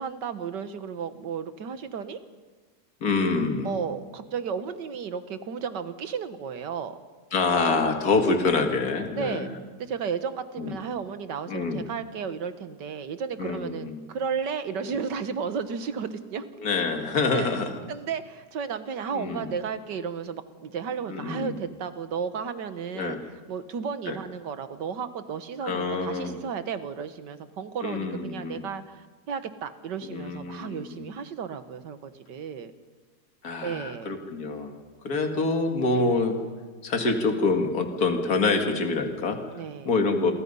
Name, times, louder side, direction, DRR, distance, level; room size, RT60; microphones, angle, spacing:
voice 1, 0.0-2.2 3.6-7.0 9.2-9.5 9.8-16.5 17.3-17.6 17.9-32.7 33.6-34.2 35.1-35.4 35.9-36.2 39.5-39.9, right 6 dB, 85° right, 11 dB, 1.9 m, -33 dB
voice 2, 3.0-3.7 7.3-9.5 10.6-10.8 11.5-11.8 13.4-14.0 16.6-17.8 19.1-19.5 21.1-21.6 22.9-23.2 24.1-24.2 25.6-26.4 27.8-28.6 30.0-31.1 33.4-34.7 35.0-36.4 36.8-39.4 39.9-40.3, left 3 dB, 60° left, 5 dB, 2.6 m, -26 dB
29.0 x 23.5 x 5.6 m, 1.4 s
omnidirectional pair, 1.8 m